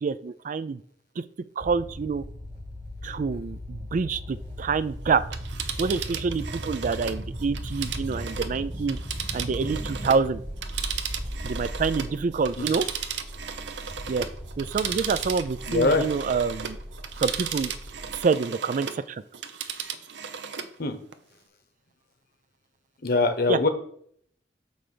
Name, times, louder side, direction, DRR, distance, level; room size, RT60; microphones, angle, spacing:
voice 1, 0.0-0.8 1.2-1.3 1.6-2.2 3.0-5.2 5.8-9.0 9.3-10.4 11.4-12.9 14.1-14.3 14.6-16.8 17.2-17.7 18.1-19.2 23.5-23.6, right 5 dB, 45° right, 15 dB, 0.4 m, -27 dB
sound 1, 1.6-18.2, equal, 15° right, 0.9 m, -37 dB
Telephone, 5.2-10.3 10.6-19.0 19.3-20.7 21.1-21.2, right 8 dB, 80° right, 0.7 m, -35 dB
voice 2, 15.7-16.1 20.8-21.0 23.0-23.7, left 3 dB, 60° left, 7 dB, 1.1 m, -23 dB
9.0 x 3.4 x 6.8 m, 0.66 s
head